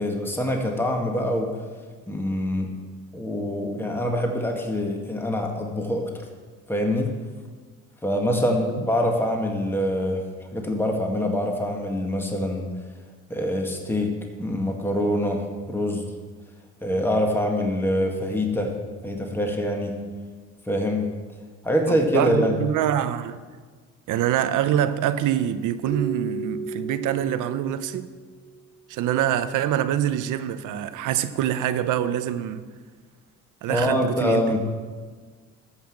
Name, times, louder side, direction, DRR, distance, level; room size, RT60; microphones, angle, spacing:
voice 1, 0.0-1.5 2.1-2.7 3.1-6.0 6.7-7.1 8.0-10.2 10.5-12.7 13.3-14.1 14.4-16.1 16.8-18.7 19.0-20.0 20.7-21.1 21.6-22.6 33.7-34.6, left 1 dB, 5° left, 1.8 m, -24 dB
voice 2, 21.9-23.4 24.1-28.1 28.9-32.6 33.6-34.5, right 11 dB, 85° right, 0.8 m, -25 dB
Keyboard (musical), 25.9-28.7, right 3 dB, 30° right, 1.7 m, -35 dB
13.0 x 5.7 x 7.7 m
cardioid pair, 90°, 30 cm